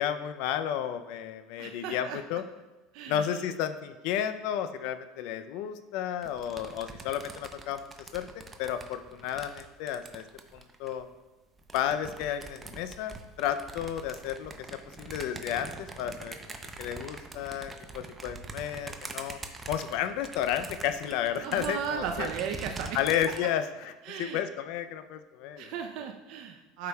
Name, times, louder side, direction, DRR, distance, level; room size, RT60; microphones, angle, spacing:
voice 1, 0.0-2.4 3.1-7.8 8.1-10.2 10.8-11.1 11.7-19.4 19.7-22.3 22.9-23.6 24.2-25.7, left 10 dB, 65° left, 10 dB, 0.5 m, -32 dB
voice 2, 1.6-2.2 2.9-3.4 21.4-23.0 24.0-24.4 25.6-26.9, right 7 dB, 60° right, 4 dB, 0.6 m, -36 dB
sound 1, 6.2-11.0 11.6-23.4, right 3 dB, 20° right, 0.6 m, -44 dB
12.0 x 5.0 x 2.3 m, 1.1 s
supercardioid pair, 120°, 0 cm